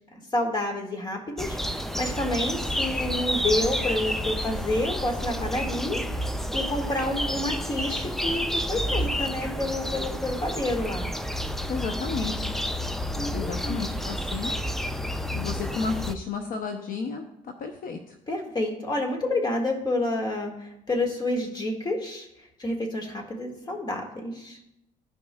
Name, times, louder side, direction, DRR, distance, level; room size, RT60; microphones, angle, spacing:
voice 1, 0.1-6.0 6.5-11.2 13.2-13.8 18.3-22.3 22.6-24.6, left 2 dB, 25° left, 1 dB, 1.8 m, -29 dB
sound 1, 1.4-16.2, equal, ahead, 0.4 m, -30 dB
voice 2, 11.7-12.6 13.3-14.5 15.3-18.1, left 5 dB, 55° left, 4 dB, 0.8 m, -32 dB
14.5 x 5.4 x 2.3 m, 0.83 s
cardioid pair, 110°, 17 cm